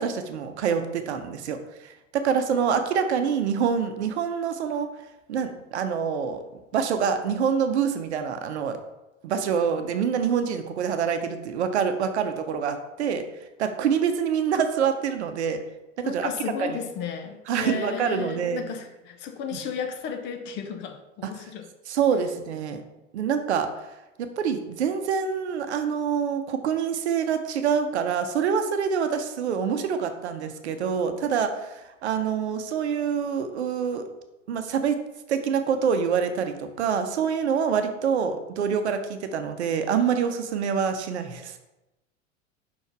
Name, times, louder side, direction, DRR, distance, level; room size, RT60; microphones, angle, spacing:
voice 1, 0.0-4.9 5.3-6.4 6.7-8.8 9.2-13.2 13.6-15.6 16.1-16.3 16.6-16.8 17.5-18.6 19.5-19.6 21.2-21.4 21.9-22.8 23.1-23.7 24.2-34.0 34.5-35.0 35.3-41.6, right 7 dB, 60° right, 0.8 m, -26 dB
voice 2, 16.0-21.7, left 7 dB, 30° left, 0.6 m, -34 dB
5.5 x 4.4 x 4.7 m
figure-of-eight pair, 90°, 39 cm